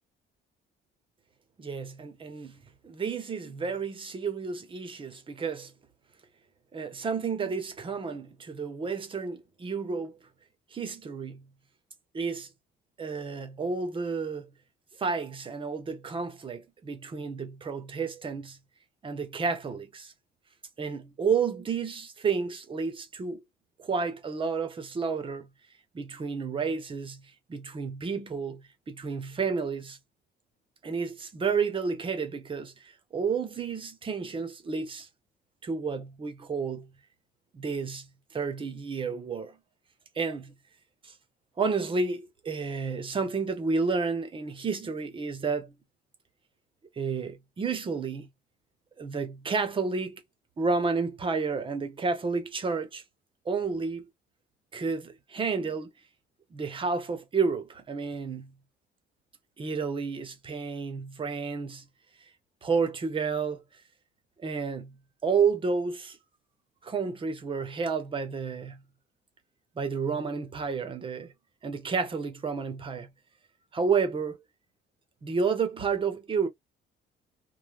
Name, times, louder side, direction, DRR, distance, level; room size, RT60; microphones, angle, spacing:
voice 1, 1.6-2.6 2.8-5.7 6.7-10.2 10.7-11.4 12.1-12.5 13.0-14.5 15.0-18.6 19.0-20.1 20.8-23.4 23.8-25.5 25.9-27.2 27.5-30.0 30.8-35.1 35.6-36.9 37.5-38.1 38.3-39.6 40.2-40.5 41.0-41.1 41.6-45.8 47.0-48.3 49.0-50.2 50.6-53.0 53.5-54.0 54.7-55.9 56.5-58.5 59.6-61.8 62.6-63.6 64.4-64.9 65.2-66.2 66.8-68.8 69.8-71.3 71.6-73.1 73.7-74.4 75.2-76.5, right 5 dB, 25° right, 0.8 m, -31 dB
3.2 x 2.2 x 2.3 m
cardioid pair, 140°, 19 cm